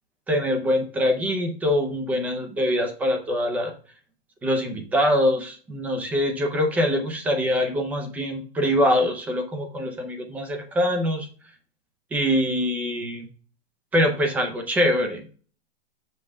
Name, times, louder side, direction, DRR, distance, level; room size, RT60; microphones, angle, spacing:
voice 1, 0.3-3.7 4.4-11.3 12.1-13.3 13.9-15.4, equal, 5° right, 4 dB, 0.6 m, -24 dB
7.5 x 5.4 x 3.4 m, 0.40 s
supercardioid pair, 175°, 32 cm